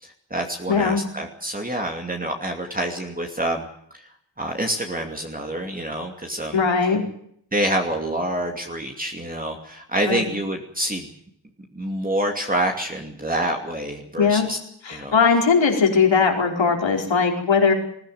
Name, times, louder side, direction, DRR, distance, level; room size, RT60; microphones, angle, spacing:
voice 1, 0.0-3.7 3.9-4.1 4.4-6.6 7.5-11.1 11.7-14.6 14.9-15.1, right 1 dB, 20° right, 2 dB, 2.7 m, -27 dB
voice 2, 0.7-1.0 6.5-7.0 10.1-10.2 14.2-14.5 14.8-17.7, left 5 dB, 75° left, 2 dB, 4.9 m, -19 dB
20.5 x 16.5 x 9.4 m, 0.68 s
wide cardioid pair, 110°, 45 cm